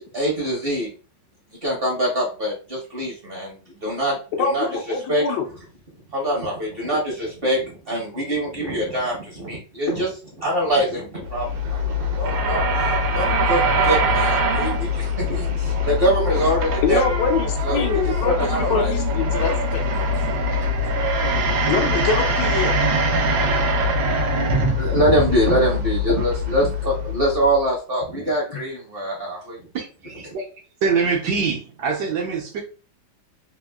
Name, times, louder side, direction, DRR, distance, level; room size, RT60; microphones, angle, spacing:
voice 1, 0.1-0.9 1.6-3.5 3.8-4.7 5.1-5.2 6.1-12.7 13.1-17.0 17.6-18.9 24.8-29.6, right 1 dB, 45° right, -4 dB, 0.8 m, -24 dB
voice 2, 4.3-5.5 16.8-19.8 21.7-22.8 28.5-28.6, left 5 dB, 75° left, 5 dB, 1.2 m, -24 dB
sound 1, 11.3-27.6, left 1 dB, 90° right, 1.4 m, -22 dB
voice 3, 29.7-30.4 30.8-32.6, right 5 dB, 70° right, 1 dB, 1.2 m, -24 dB
3.5 x 2.4 x 2.3 m, 0.36 s
omnidirectional pair, 2.0 m